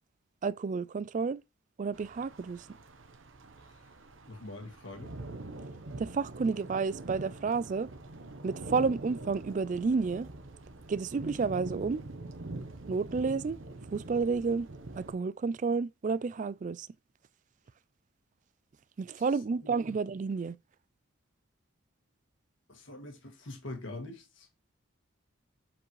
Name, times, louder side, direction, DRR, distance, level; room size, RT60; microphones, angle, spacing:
voice 1, 0.4-1.4 1.8-2.7 6.0-7.9 8.4-10.3 10.9-12.0 12.9-13.6 13.9-14.7 15.0-16.9 19.0-20.6, right 4 dB, 35° right, 0.3 m, -31 dB
sound 1, 1.9-15.1, right 2 dB, 70° right, 1.0 m, -44 dB
voice 2, 4.3-5.2 19.6-19.7 22.7-24.5, left 2 dB, 65° left, 1.8 m, -44 dB
7.6 x 4.7 x 3.2 m
head